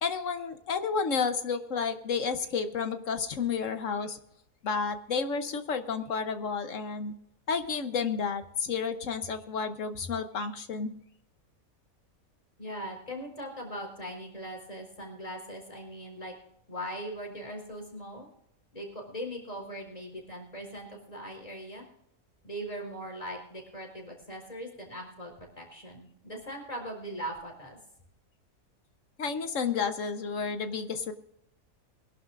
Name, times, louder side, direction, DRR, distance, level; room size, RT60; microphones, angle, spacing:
voice 1, 0.0-4.2 4.6-7.1 7.5-10.9 29.2-31.1, left 5 dB, 65° left, 9 dB, 1.2 m, -31 dB
voice 2, 12.6-16.3 16.7-18.3 18.7-21.8 22.4-27.8, equal, 25° left, 1 dB, 4.4 m, -40 dB
23.0 x 11.5 x 2.5 m, 0.76 s
omnidirectional pair, 1.5 m